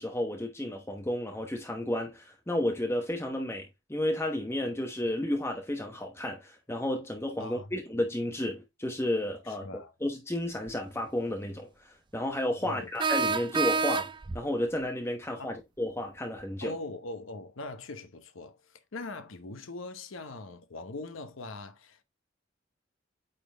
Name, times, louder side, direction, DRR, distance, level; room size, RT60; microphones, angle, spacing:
voice 1, 0.0-16.7, left 1 dB, 15° left, 1.0 m, -32 dB
voice 2, 9.4-9.9 12.6-12.9 15.4-15.5 16.6-22.0, left 2 dB, 90° left, 0.9 m, -41 dB
sound 1, 10.7-10.8 13.0-14.4, right 4 dB, 25° right, 0.4 m, -28 dB
8.9 x 3.9 x 3.4 m
head